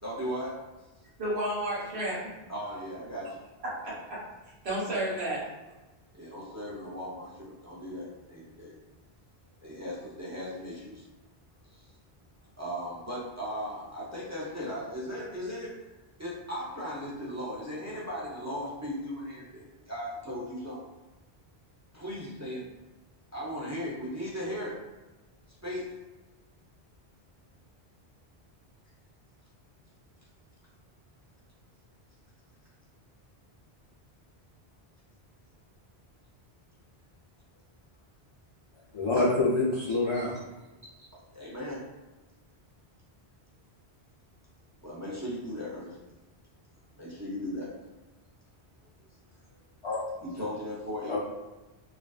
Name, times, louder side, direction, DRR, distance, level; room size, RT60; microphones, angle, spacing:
voice 1, 0.0-0.5 2.5-3.3 6.1-8.8 9.6-11.0 11.7-11.8 12.6-15.7 16.2-20.8 21.9-22.6 23.3-24.7 25.6-25.8 41.3-41.8 44.8-46.0 46.9-47.7 50.2-51.2, equal, 30° right, -7 dB, 0.3 m, -37 dB
voice 2, 1.2-2.2 3.8-4.2 4.6-5.4, right 1 dB, 85° right, -8 dB, 1.2 m, -31 dB
voice 3, 38.9-40.3 49.8-50.0 51.1-51.2, left 2 dB, 50° left, -7 dB, 0.3 m, -26 dB
2.4 x 2.2 x 2.3 m, 1.1 s
omnidirectional pair, 1.1 m